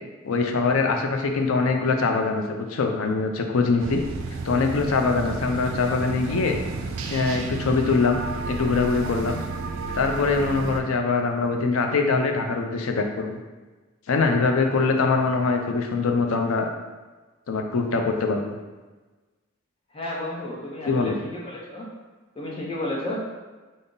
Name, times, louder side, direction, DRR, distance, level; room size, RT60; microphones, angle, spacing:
voice 1, 0.2-4.0 4.4-6.6 7.1-8.2 8.5-9.4 9.9-13.4 14.1-16.7 17.5-18.5 20.9-21.2, left 4 dB, 85° left, 4 dB, 0.4 m, -23 dB
sound 1, 3.8-10.8, right 3 dB, 85° right, 0.4 m, -32 dB
voice 2, 19.9-21.9 22.4-23.2, left 1 dB, 25° left, -4 dB, 0.6 m, -32 dB
3.9 x 2.0 x 3.6 m, 1.3 s
head